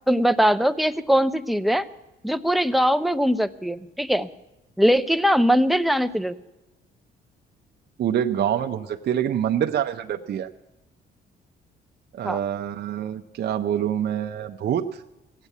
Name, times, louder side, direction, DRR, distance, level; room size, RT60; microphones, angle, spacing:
voice 1, 0.1-1.9 2.2-4.3 4.8-6.3 12.2-12.4, equal, ahead, 10 dB, 0.6 m, -21 dB
voice 2, 8.0-10.5 12.1-15.0, right 9 dB, 55° right, 5 dB, 0.6 m, -26 dB
16.0 x 8.3 x 8.3 m, 0.97 s
cardioid pair, 90°, 20 cm